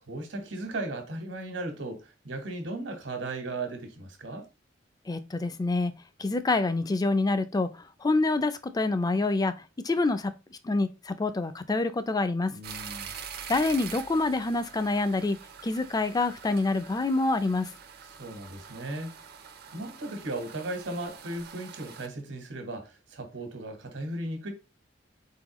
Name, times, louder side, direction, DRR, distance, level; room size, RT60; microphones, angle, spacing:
voice 1, 0.1-4.5 12.5-13.1 18.2-19.1 19.7-24.5, right 2 dB, 80° right, 1.4 m, -36 dB
voice 2, 5.1-5.9 6.2-7.7 8.0-9.5 9.8-12.6 13.5-15.4 15.6-17.7, left 3 dB, 20° left, 0.4 m, -26 dB
sound 1, 12.6-22.1, right 7 dB, 55° right, 0.6 m, -45 dB
4.4 x 3.8 x 3.0 m
head